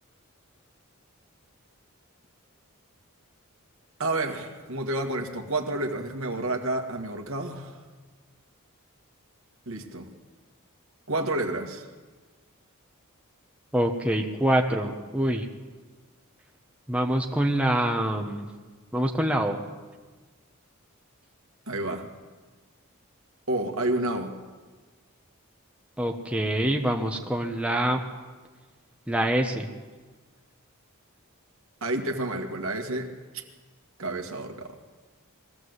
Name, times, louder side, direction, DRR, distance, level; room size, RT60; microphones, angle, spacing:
voice 1, 4.0-7.8 9.7-10.1 11.1-11.9 21.7-22.1 23.5-24.4 31.8-33.4 34.0-34.8, right 2 dB, 65° right, 3 dB, 2.0 m, -30 dB
voice 2, 13.7-15.5 16.9-18.5 18.9-19.6 26.0-28.0 29.1-29.7, right 1 dB, 5° right, 2 dB, 1.1 m, -25 dB
21.5 x 15.0 x 8.1 m, 1.4 s
head